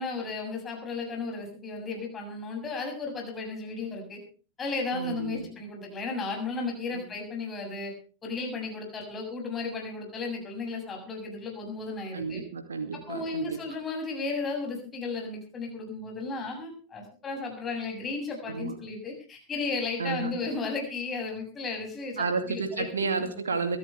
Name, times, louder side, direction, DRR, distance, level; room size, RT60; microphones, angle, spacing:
voice 1, 0.0-4.2 4.6-7.9 8.2-12.4 12.9-22.9, left 3 dB, 20° left, 1 dB, 7.0 m, -34 dB
voice 2, 4.9-5.5 12.1-13.6 18.5-18.7 20.0-20.3 22.2-23.8, right 4 dB, 70° right, 7 dB, 2.4 m, -31 dB
23.5 x 13.0 x 3.4 m, 0.37 s
figure-of-eight pair, 90°, 0 cm